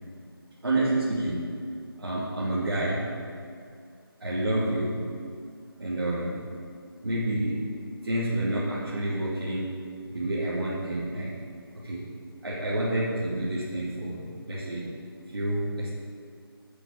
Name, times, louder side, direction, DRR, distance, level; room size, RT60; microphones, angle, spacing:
voice 1, 0.6-1.6 2.0-3.1 4.2-5.1 5.8-6.4 7.0-7.7 8.0-9.8 10.1-11.4 11.7-12.1 12.4-14.9 15.3-15.9, right 1 dB, 75° right, -8 dB, 2.6 m, -29 dB
10.5 x 8.3 x 5.1 m, 2.3 s
figure-of-eight pair, 170°, 13 cm